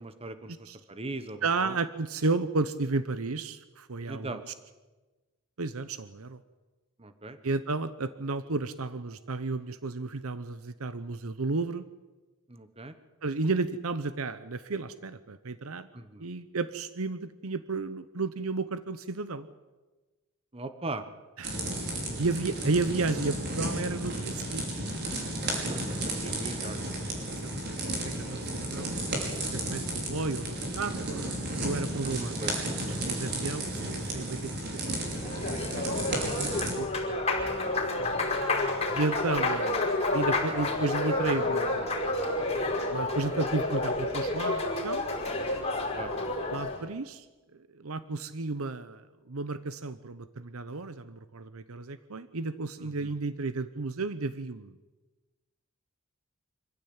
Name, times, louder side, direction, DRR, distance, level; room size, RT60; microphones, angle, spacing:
voice 1, 0.0-0.5 0.9-1.7 4.1-4.4 7.0-7.4 12.5-12.9 15.9-16.3 20.5-21.1 25.7-26.9 32.0-32.6 37.6-37.8 38.1-38.4 45.9-46.1 52.8-53.1, right 2 dB, 30° right, 10 dB, 1.2 m, -40 dB
voice 2, 1.4-4.4 5.6-6.4 7.4-11.8 13.2-15.9 16.2-19.5 21.4-21.7 22.2-24.7 25.9-26.0 27.3-32.4 32.8-37.2 38.9-42.1 42.9-45.1 46.5-47.3 47.5-54.8, right 3 dB, 85° right, 13 dB, 0.9 m, -33 dB
sound 1, 21.4-36.7, right 1 dB, 50° right, 5.6 m, -33 dB
Applause, 35.0-46.8, left 2 dB, 30° left, 5.3 m, -30 dB
25.5 x 15.5 x 8.8 m, 1.2 s
head